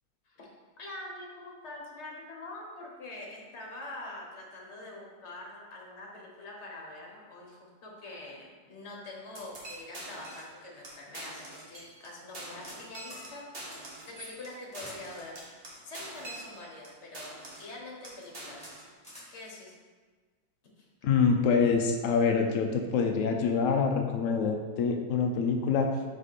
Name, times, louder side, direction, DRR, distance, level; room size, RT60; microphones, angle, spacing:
voice 1, 0.8-15.4 15.8-17.3 17.6-18.7 19.3-19.7 20.8-20.9, left 2 dB, 45° left, -2 dB, 1.3 m, -45 dB
sound 1, 9.3-10.5 10.8-10.9 11.1-12.1 12.3-16.9 17.1-17.7 18.0-18.9, right 1 dB, 35° right, 1.2 m, -44 dB
sound 2, 12.3-12.8 13.1-13.2 13.7-13.8 14.7-15.0 15.7-16.4 17.2-17.6 18.1-18.3 18.6-18.7 19.0-19.3, equal, 5° left, 1.6 m, -49 dB
voice 2, 21.0-25.9, left 5 dB, 85° left, 3 dB, 0.6 m, -26 dB
5.2 x 4.8 x 4.1 m, 1.5 s
omnidirectional pair, 2.0 m